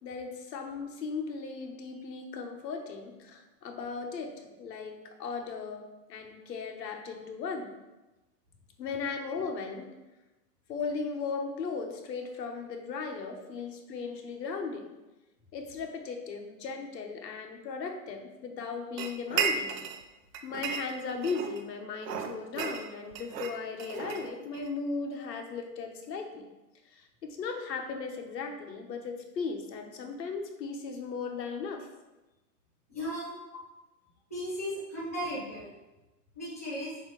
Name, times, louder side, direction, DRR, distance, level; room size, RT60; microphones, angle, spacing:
voice 1, 0.0-7.7 8.8-10.0 10.7-14.9 15.5-19.8 20.4-26.5 26.9-31.9 33.5-33.6, left 4 dB, 80° left, 4 dB, 1.3 m, -37 dB
sound 1, 19.0-20.0 20.3-21.6 22.0-24.7, right 6 dB, 80° right, 0.8 m, -34 dB
voice 2, 32.9-33.3 34.3-35.7 36.3-36.9, equal, 10° left, -10 dB, 0.4 m, -36 dB
7.2 x 2.9 x 4.8 m, 1.1 s
hypercardioid pair, 165°, 49 cm